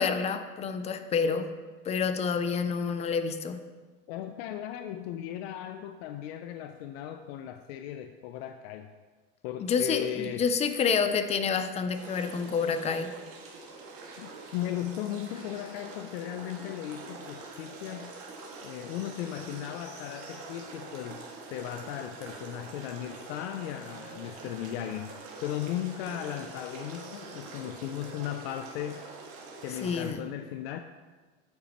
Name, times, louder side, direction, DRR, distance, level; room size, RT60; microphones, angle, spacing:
voice 1, 0.0-1.5 1.9-3.6 9.6-13.1 24.2-24.3 29.8-30.2, left 5 dB, 20° left, 9 dB, 0.4 m, -28 dB
voice 2, 4.1-8.9 9.4-10.5 14.2-18.1 18.6-25.1 25.4-29.1 29.6-30.8, left 11 dB, 75° left, 8 dB, 0.5 m, -37 dB
sound 1, 11.9-30.1, right 3 dB, 45° right, 1.9 m, -45 dB
8.5 x 8.3 x 3.0 m, 1.4 s
supercardioid pair, 140°, 31 cm